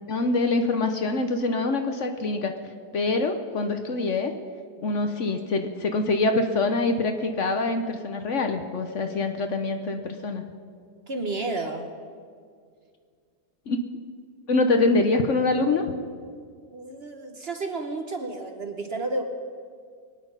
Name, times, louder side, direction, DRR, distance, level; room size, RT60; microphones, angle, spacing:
voice 1, 0.1-2.5 2.9-4.3 4.8-10.4 13.7-13.9 14.5-15.9, left 3 dB, 55° left, 6 dB, 1.1 m, -25 dB
voice 2, 11.1-11.9 16.7-19.2, right 2 dB, 45° right, 5 dB, 1.1 m, -31 dB
23.0 x 9.4 x 5.6 m, 2.1 s
omnidirectional pair, 1.7 m